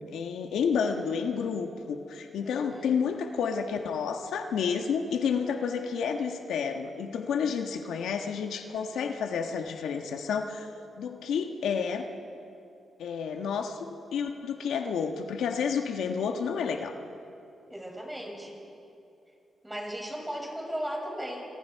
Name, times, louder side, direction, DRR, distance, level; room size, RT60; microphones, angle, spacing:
voice 1, 0.0-10.7 10.9-12.1 13.0-17.0, left 6 dB, 90° left, 4 dB, 1.4 m, -30 dB
voice 2, 2.4-2.9 17.7-18.6 19.6-21.5, equal, 10° right, -1 dB, 6.9 m, -36 dB
27.5 x 25.0 x 4.7 m, 2.6 s
cardioid pair, 80°, 0 cm